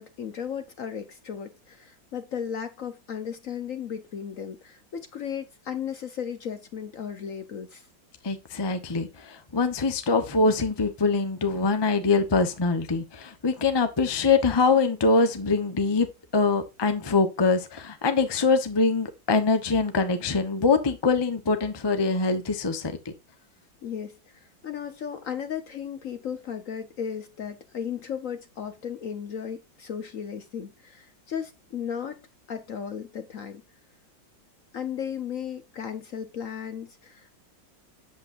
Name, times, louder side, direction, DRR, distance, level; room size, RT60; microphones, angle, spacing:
voice 1, 0.0-7.9 23.8-32.2 32.5-33.6 34.7-37.3, left 8 dB, 55° left, 1.0 m, -35 dB
voice 2, 8.2-16.1 16.3-23.1, left 4 dB, 20° left, 0.6 m, -24 dB
8.5 x 7.7 x 2.6 m
omnidirectional pair, 2.0 m